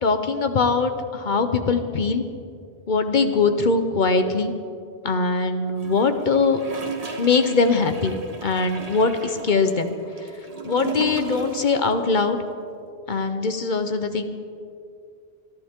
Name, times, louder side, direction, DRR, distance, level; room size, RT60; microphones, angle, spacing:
voice 1, 0.0-2.2 2.9-4.5 5.0-6.6 7.2-8.1 8.4-9.9 10.6-12.4 13.1-14.2, left 4 dB, 50° left, 8 dB, 0.9 m, -21 dB
Gurgling / Toilet flush, 5.8-11.8 12.1-12.2, right 4 dB, 35° right, 1.3 m, -35 dB
27.0 x 11.0 x 3.7 m, 2.5 s
omnidirectional pair, 1.1 m